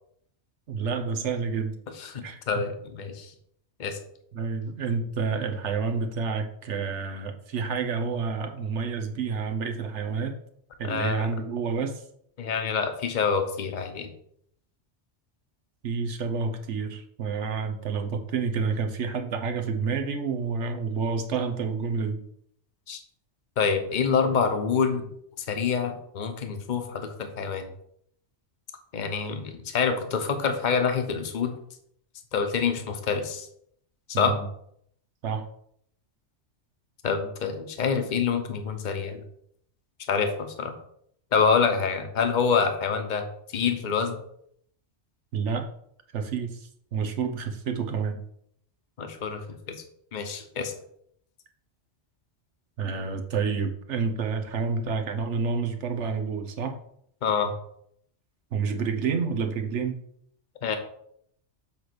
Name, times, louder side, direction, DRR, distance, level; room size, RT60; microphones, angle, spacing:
voice 1, 0.7-1.7 2.2-2.6 4.3-10.4 10.8-12.0 15.8-22.2 34.1-34.5 35.2-35.4 45.3-45.7 46.1-48.2 52.8-56.8 58.5-60.0, right 5 dB, 80° right, 5 dB, 1.2 m, -29 dB
voice 2, 2.0-3.3 3.8-4.0 10.8-11.3 12.4-14.1 22.9-23.0 23.6-25.1 25.4-27.7 28.9-31.5 32.3-33.5 34.1-34.3 37.0-39.2 40.1-40.3 40.6-40.7 41.3-43.3 43.5-44.2 49.0-49.4 50.1-50.7 57.2-57.5 60.6-60.8, left 6 dB, 45° left, 7 dB, 0.9 m, -26 dB
7.5 x 3.3 x 6.0 m, 0.68 s
omnidirectional pair, 1.2 m